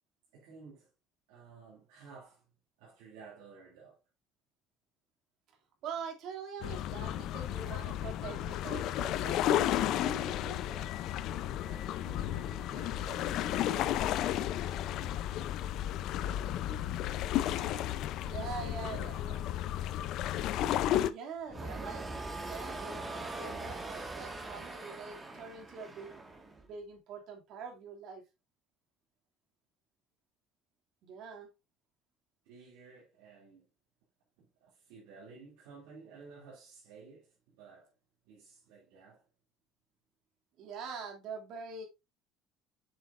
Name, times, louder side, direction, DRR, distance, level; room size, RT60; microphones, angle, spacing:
voice 1, 0.3-0.9 1.3-2.5 2.8-4.0 10.6-11.2 11.6-14.0 14.3-17.1 18.3-19.7 32.4-33.7 34.4-37.9 38.2-39.2, right 4 dB, 90° right, 2.8 m, -54 dB
voice 2, 5.8-9.5 10.0-10.6 18.2-19.2 20.8-22.1 22.3-26.2 26.6-28.2 31.0-31.5 40.6-41.9, right 6 dB, 65° right, 2.6 m, -44 dB
sound 1, 6.6-21.1, left 12 dB, 65° left, 0.6 m, -33 dB
sound 2, 21.5-26.7, right 2 dB, 20° right, 1.8 m, -42 dB
7.6 x 6.5 x 2.6 m
cardioid pair, 105°, 0 cm